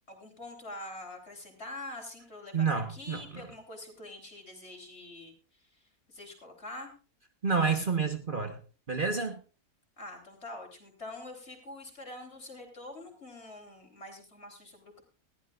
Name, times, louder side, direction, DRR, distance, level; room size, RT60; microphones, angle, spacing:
voice 1, 0.1-5.8 6.1-6.9 10.0-15.0, left 2 dB, 45° left, 3 dB, 4.2 m, -45 dB
voice 2, 2.5-3.4 7.4-8.6 8.9-9.4, right 5 dB, 35° right, 6 dB, 1.4 m, -29 dB
20.5 x 14.5 x 2.5 m, 0.34 s
omnidirectional pair, 1.5 m